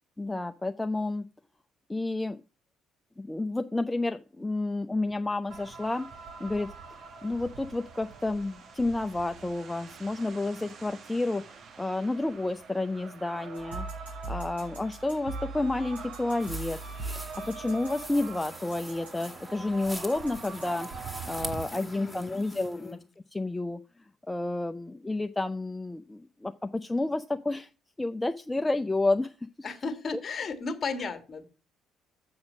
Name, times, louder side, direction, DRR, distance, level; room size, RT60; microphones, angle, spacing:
voice 1, 0.2-1.3 1.9-2.4 3.2-6.1 6.4-6.7 7.2-16.8 17.3-20.9 21.3-23.0 23.3-23.8 24.3-27.7 28.0-29.3, left 2 dB, 15° left, 7 dB, 0.5 m, -30 dB
sound 1, 5.5-21.6, right 5 dB, 50° right, 1.3 m, -45 dB
sound 2, 13.5-18.4 18.7-19.3 20.1-20.7, right 3 dB, 85° right, 3.0 m, -41 dB
sound 3, 16.4-22.9, right 1 dB, 10° right, 1.8 m, -44 dB
voice 2, 21.7-23.0 29.6-31.4, left 4 dB, 40° left, 9 dB, 1.6 m, -35 dB
7.3 x 6.3 x 6.2 m, 0.33 s
figure-of-eight pair, 50°, 0 cm